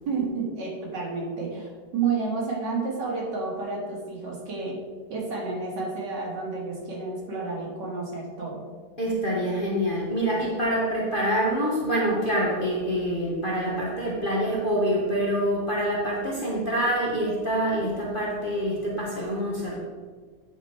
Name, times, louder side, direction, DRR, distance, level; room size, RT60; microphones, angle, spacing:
voice 1, 0.1-4.8 5.1-8.6, right 4 dB, 70° right, -2 dB, 2.3 m, -30 dB
voice 2, 9.0-19.8, equal, 35° left, -5 dB, 1.1 m, -26 dB
9.0 x 4.5 x 4.3 m, 1.5 s
omnidirectional pair, 1.9 m